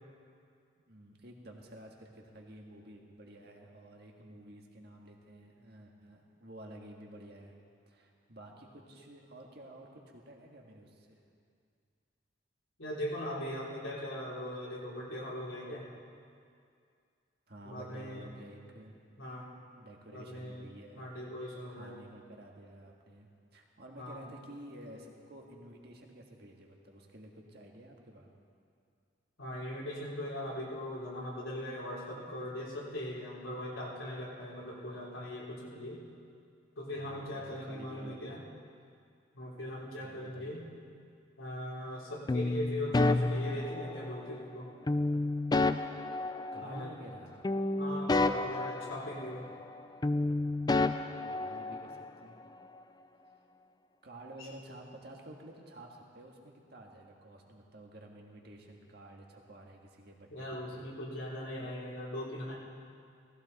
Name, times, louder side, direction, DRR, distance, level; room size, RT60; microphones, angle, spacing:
voice 1, 0.9-7.5 7.9-11.2 17.5-19.0 19.8-21.1 21.7-28.3 36.9-38.4 40.0-40.6 46.1-47.6 51.2-52.4 54.0-60.8 61.6-61.8, right 1 dB, 55° right, 0 dB, 1.7 m, -51 dB
voice 2, 12.8-15.9 17.6-18.3 19.2-19.5 20.1-20.7 21.0-21.9 24.0-24.2 29.4-36.0 36.8-38.4 39.3-40.6 41.4-44.7 46.6-46.9 47.8-49.5 54.4-54.5 60.3-62.5, left 1 dB, 85° left, -6 dB, 3.7 m, -40 dB
sound 1, 42.3-44.3 44.9-47.2 47.4-49.8 50.0-52.1, left 2 dB, 20° left, 0.3 m, -31 dB
17.5 x 15.5 x 4.1 m, 2.3 s
head